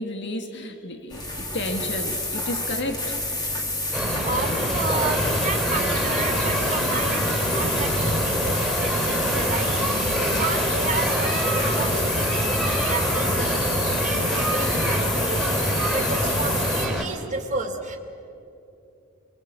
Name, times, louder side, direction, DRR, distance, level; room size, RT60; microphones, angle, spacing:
voice 1, 0.0-3.2, left 1 dB, 55° left, 5 dB, 2.1 m, -32 dB
sound 1, 1.1-16.9, left 2 dB, 20° left, 3.1 m, -29 dB
sound 2, 3.9-17.0, equal, ahead, 3.8 m, -25 dB
voice 2, 3.9-13.6 13.9-18.0, right 3 dB, 35° right, 2 dB, 2.7 m, -32 dB
24.0 x 23.0 x 8.3 m, 2.8 s
head